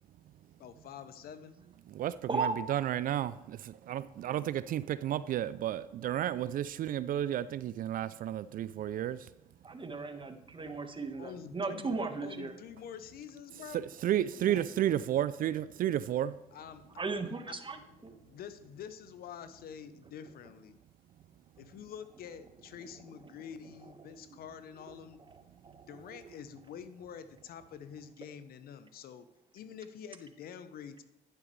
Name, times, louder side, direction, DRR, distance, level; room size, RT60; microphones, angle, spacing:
voice 1, 0.6-1.6 11.2-13.9 14.3-15.1 16.5-17.1 17.5-20.8 21.6-25.2 25.9-29.3 29.5-31.0, left 8 dB, 65° left, 0.9 m, -47 dB
voice 2, 1.9-9.3 14.0-16.4, right 11 dB, 60° right, 0.4 m, -32 dB
voice 3, 9.6-12.5 17.0-17.8 18.0-18.1 25.6-25.8, right 4 dB, 30° right, 1.6 m, -36 dB
11.0 x 9.5 x 3.3 m
hypercardioid pair, 60°, 17 cm